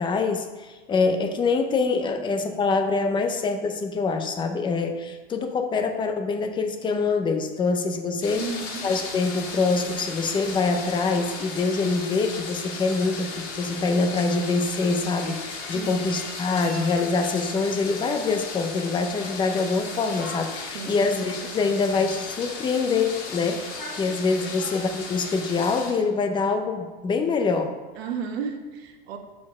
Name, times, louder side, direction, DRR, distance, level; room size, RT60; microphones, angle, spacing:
voice 1, 0.0-8.4 8.8-27.7, left 4 dB, 15° left, 5 dB, 0.6 m, -25 dB
sound 1, 8.2-26.0, left 4 dB, 45° left, 2.1 m, -36 dB
voice 2, 8.3-8.9 15.7-16.1 20.7-21.1 24.4-24.5 28.0-29.2, right 6 dB, 85° right, 5 dB, 1.2 m, -33 dB
7.0 x 4.3 x 5.9 m, 1.3 s
supercardioid pair, 145°, 31 cm